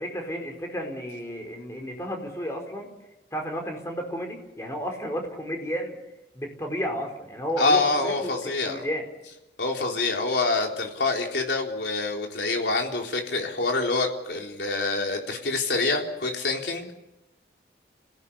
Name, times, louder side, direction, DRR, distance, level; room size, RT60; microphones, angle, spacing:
voice 1, 0.0-2.9 3.3-6.0 6.3-8.4 8.6-9.0, equal, 15° left, 3 dB, 4.6 m, -32 dB
voice 2, 7.6-8.8 9.6-16.9, left 3 dB, 80° left, 1 dB, 3.9 m, -26 dB
28.0 x 17.5 x 8.6 m, 0.93 s
head